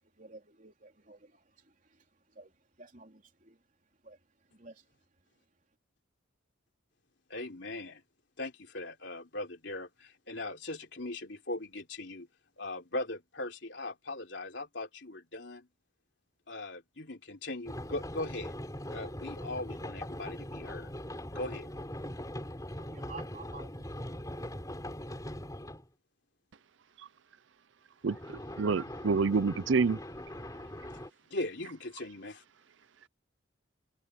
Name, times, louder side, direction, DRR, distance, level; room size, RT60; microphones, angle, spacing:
voice 1, 0.2-1.4 2.3-2.5 2.8-3.6 4.0-4.2 4.5-4.8 22.8-24.0 24.3-24.4, right 3 dB, 40° right, 3.5 m, -51 dB
voice 2, 7.3-8.0 8.4-12.3 12.6-15.7 16.5-18.6 18.9-20.9 21.3-21.7 31.3-32.4, left 2 dB, 60° left, 3.7 m, -39 dB
sound 1, 17.7-25.9 28.1-31.1, left 1 dB, 20° left, 4.0 m, -41 dB
voice 3, 28.0-30.0, right 4 dB, 70° right, 0.5 m, -28 dB
head